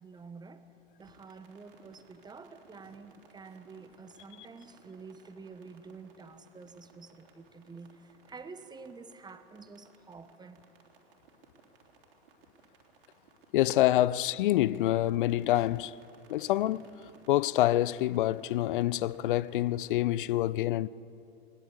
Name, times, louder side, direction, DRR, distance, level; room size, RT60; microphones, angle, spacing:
voice 1, 0.0-10.6, right 4 dB, 15° right, 1.2 m, -49 dB
sound 1, 1.0-20.1, right 4 dB, 60° right, 3.3 m, -61 dB
voice 2, 13.5-15.9 16.3-16.9 17.3-20.9, left 14 dB, 55° left, 0.5 m, -26 dB
21.0 x 20.5 x 8.1 m
figure-of-eight pair, 90°, 31 cm